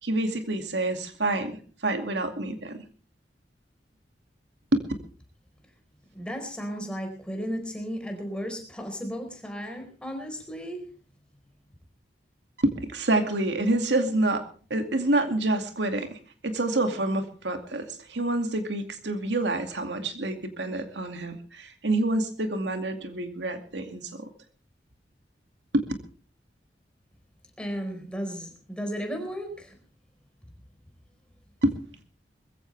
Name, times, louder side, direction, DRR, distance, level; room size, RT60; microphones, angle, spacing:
voice 1, 0.0-2.8 4.7-4.8 12.6-14.4 14.7-24.3 25.7-25.9 31.6-31.8, right 2 dB, 80° right, 6 dB, 2.4 m, -27 dB
voice 2, 6.1-10.8 27.6-29.7, equal, 5° left, 4 dB, 4.5 m, -34 dB
21.5 x 15.5 x 3.4 m, 0.39 s
head